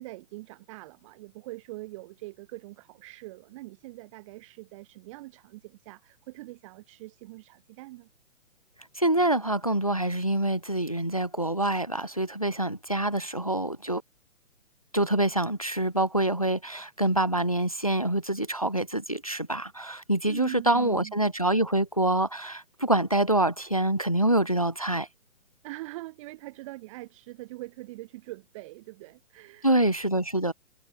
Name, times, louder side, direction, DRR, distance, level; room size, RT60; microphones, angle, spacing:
voice 1, 0.0-8.1 20.2-21.2 25.6-29.8, right 19 dB, 20° right, 2.9 m, -42 dB
voice 2, 9.0-14.0 14.9-25.1 29.6-30.5, right 1 dB, 30° left, 0.4 m, -26 dB
hypercardioid pair, 165°, 42 cm